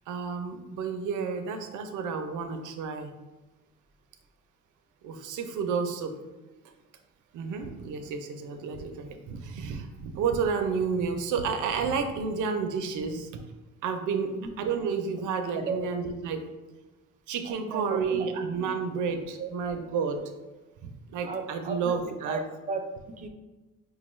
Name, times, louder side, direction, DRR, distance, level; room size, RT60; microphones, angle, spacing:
voice 1, 0.1-3.1 5.0-6.2 7.3-13.3 13.8-16.4 17.3-20.2 20.8-22.4, right 5 dB, 80° right, 6 dB, 0.5 m, -31 dB
voice 2, 17.5-18.3 19.4-19.5 21.2-23.3, right 4 dB, 25° right, 5 dB, 0.4 m, -35 dB
4.5 x 2.3 x 3.0 m, 1.1 s
cardioid pair, 90°, 30 cm